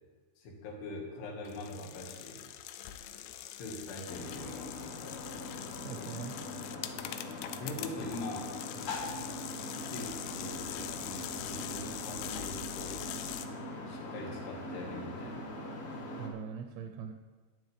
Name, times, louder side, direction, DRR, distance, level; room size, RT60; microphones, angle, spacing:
voice 1, 0.4-2.4 3.5-4.7 7.5-8.5 9.9-12.9 13.9-15.4, left 2 dB, 65° left, 0 dB, 3.9 m, -43 dB
sound 1, 1.5-13.5, left 11 dB, 85° left, 2.9 m, -43 dB
sound 2, 4.1-16.3, left 1 dB, 50° left, 2.2 m, -42 dB
voice 2, 5.8-6.4 16.2-17.1, right 7 dB, 75° right, 4 dB, 2.9 m, -41 dB
17.5 x 10.0 x 3.5 m, 1.3 s
omnidirectional pair, 5.3 m